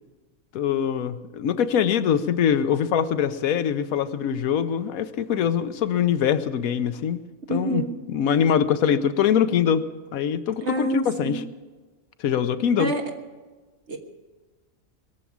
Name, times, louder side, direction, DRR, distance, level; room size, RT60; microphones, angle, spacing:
voice 1, 0.5-7.2 7.5-9.8 10.1-11.4 12.2-12.9, left 8 dB, 85° left, 12 dB, 1.2 m, -23 dB
voice 2, 7.5-7.9 10.6-11.4 12.8-13.0 13.9-14.0, right 2 dB, 55° right, 3 dB, 1.8 m, -27 dB
21.0 x 7.2 x 8.6 m, 1.3 s
omnidirectional pair, 1.4 m